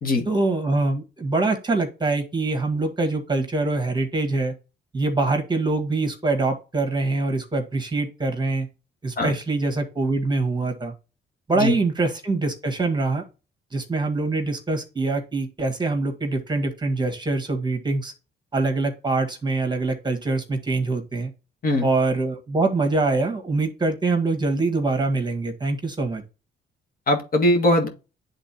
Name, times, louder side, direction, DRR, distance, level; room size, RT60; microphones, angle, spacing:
voice 1, 0.2-4.5 4.9-8.7 9.0-10.9 11.5-13.2 13.7-18.1 18.5-21.3 21.8-26.2, right 3 dB, 20° right, 5 dB, 1.8 m, -24 dB
voice 2, 27.1-27.9, left 1 dB, 45° left, 3 dB, 2.0 m, -20 dB
10.5 x 3.8 x 2.9 m, 0.31 s
cardioid pair, 90°, 20 cm